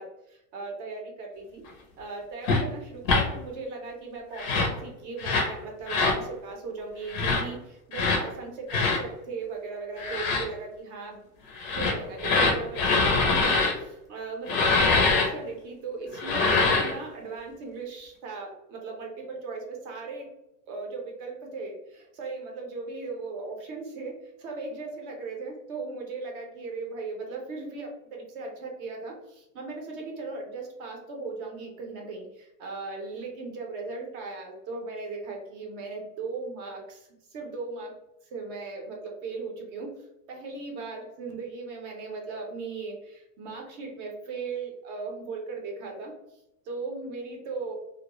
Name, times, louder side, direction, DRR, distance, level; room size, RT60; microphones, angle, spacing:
voice 1, 0.0-1.6 2.0-11.2 11.7-20.3 20.7-37.9 38.3-39.9 40.3-46.1 46.7-47.7, right 3 dB, 40° right, 0 dB, 0.6 m, -38 dB
sound 1, 2.4-2.6 3.0-3.2 4.3-4.8 5.2-5.5 5.9-6.2 7.1-7.4 7.9-8.2 8.7-9.0 10.0-10.4 11.6-13.7 14.5-15.3 16.1-16.9, left 3 dB, 35° left, 0.5 m, -23 dB
2.3 x 2.0 x 2.8 m, 0.86 s
supercardioid pair, 155°, 46 cm